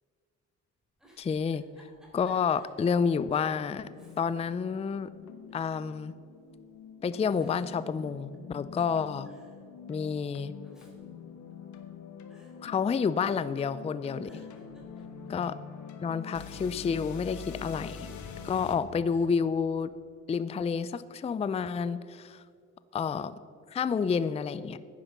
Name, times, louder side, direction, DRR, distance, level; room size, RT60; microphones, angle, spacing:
Giggle, 0.8-2.8 3.2-3.3 3.9-4.6 4.9-5.7 6.5-6.9 7.4-8.6 8.9-9.0 9.2-9.6 10.4-12.0 12.3-12.5 13.2-13.7 14.0-15.4 17.5-18.6 19.0-19.3, right 1 dB, ahead, 3.4 m, -61 dB
voice 1, 1.2-1.6 2.1-3.9 4.2-5.1 5.5-6.1 7.0-9.3 9.9-10.5 12.6-14.4 15.3-15.6 16.0-18.1 18.4-19.9 20.3-22.4 22.9-23.3 23.7-24.8, left 6 dB, 20° left, 15 dB, 0.4 m, -29 dB
sound 1, 3.8-18.8, left 6 dB, 70° left, 1.3 m, -45 dB
9.9 x 9.7 x 6.9 m, 2.3 s
cardioid pair, 90°, 30 cm